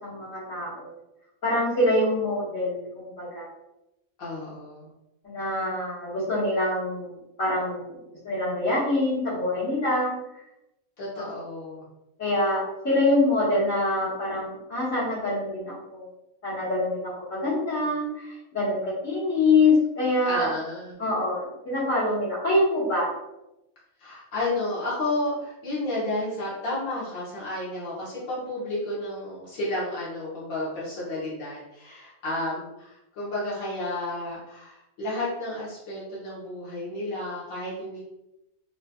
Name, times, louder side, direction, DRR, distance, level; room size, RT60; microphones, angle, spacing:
voice 1, 0.0-0.9 1.4-3.5 5.2-7.1 7.4-7.9 8.2-10.1 11.2-11.3 12.2-16.1 16.4-20.5 21.0-23.1, left 2 dB, 65° left, -8 dB, 1.9 m, -25 dB
voice 2, 4.2-4.9 11.0-11.9 20.2-21.0 24.0-38.0, left 1 dB, 90° left, -7 dB, 1.5 m, -32 dB
3.9 x 2.7 x 2.3 m, 0.91 s
omnidirectional pair, 1.4 m